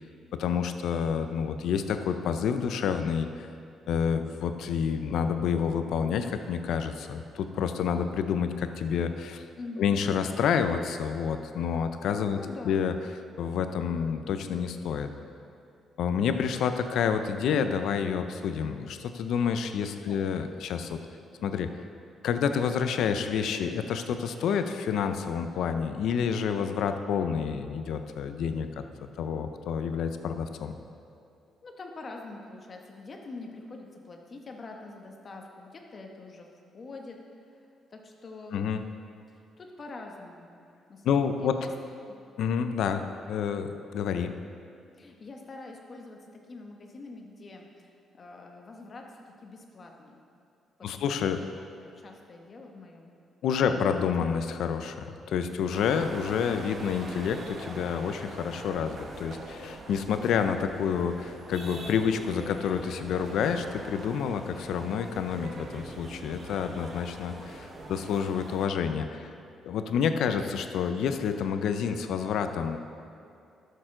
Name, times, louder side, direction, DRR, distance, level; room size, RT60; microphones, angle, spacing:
voice 1, 0.4-3.5 3.9-9.4 9.8-12.4 12.6-12.9 13.4-15.1 16.0-21.0 21.4-21.7 22.2-28.7 29.2-30.7 38.5-38.8 41.0-41.6 42.4-43.0 43.3-44.3 50.8-51.4 53.4-69.3 69.6-72.8, left 7 dB, 75° left, 8 dB, 0.6 m, -28 dB
voice 2, 9.6-9.9 12.3-12.8 20.0-20.3 31.6-36.5 36.7-38.8 39.3-40.5 40.9-41.7 42.1-42.2 42.5-42.7 45.0-50.2 50.8-51.3 51.8-53.1 53.6-54.0, left 3 dB, 40° left, 2 dB, 1.1 m, -45 dB
sound 1, 55.7-68.6, right 2 dB, 45° right, 1.2 m, -43 dB
12.5 x 6.7 x 3.8 m, 2.5 s
cardioid pair, 90°, 0 cm